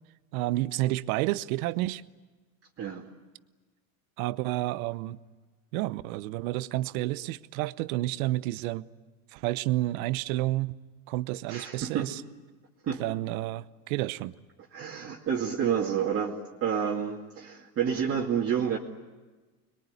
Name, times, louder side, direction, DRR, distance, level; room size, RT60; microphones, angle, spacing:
voice 1, 0.3-2.0 4.2-5.2 5.7-8.9 9.3-10.8 11.1-12.2 13.0-14.3, right 17 dB, 70° right, 1.0 m, -30 dB
voice 2, 11.5-12.1 12.8-13.0 14.7-18.8, right 8 dB, 30° right, 2.3 m, -29 dB
26.0 x 22.0 x 9.6 m
supercardioid pair, 130°, 44 cm